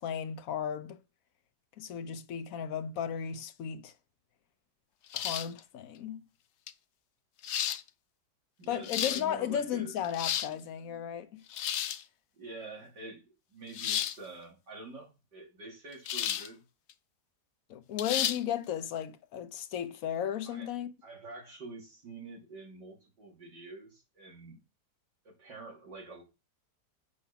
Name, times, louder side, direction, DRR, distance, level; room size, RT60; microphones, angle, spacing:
voice 1, 0.0-1.0 1.8-3.9 5.1-6.2 8.7-11.4 17.7-20.9, left 9 dB, 60° left, 1.2 m, -35 dB
sound 1, 5.1-5.6 6.7-6.8 7.4-7.8 8.6-9.2 10.0-10.5 11.5-12.0 13.7-14.2 16.1-16.5 16.9-17.0 18.0-18.4, left 10 dB, 85° left, 0.6 m, -32 dB
voice 2, 8.6-11.1 12.3-16.6 20.5-20.7 21.0-24.6 25.3-26.2, right 3 dB, 80° right, 3.6 m, -47 dB
8.0 x 5.4 x 5.8 m
omnidirectional pair, 1.8 m